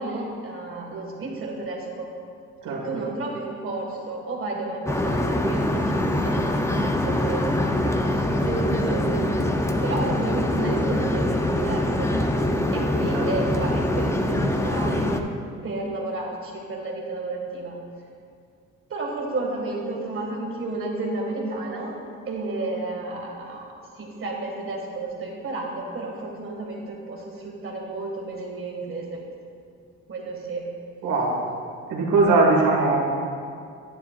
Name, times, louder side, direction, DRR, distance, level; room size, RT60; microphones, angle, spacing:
voice 1, 0.0-2.1 2.7-9.5 9.8-15.1 15.6-17.8 18.9-22.0 22.3-29.2 30.1-30.7, right 2 dB, 45° right, -1 dB, 1.9 m, -32 dB
sound 1, 4.8-15.2, left 1 dB, 10° left, 0.5 m, -24 dB
voice 2, 31.0-31.4 31.9-33.0, right 3 dB, 85° right, -2 dB, 1.9 m, -20 dB
9.7 x 9.6 x 2.4 m, 2.3 s
cardioid pair, 90°, 30 cm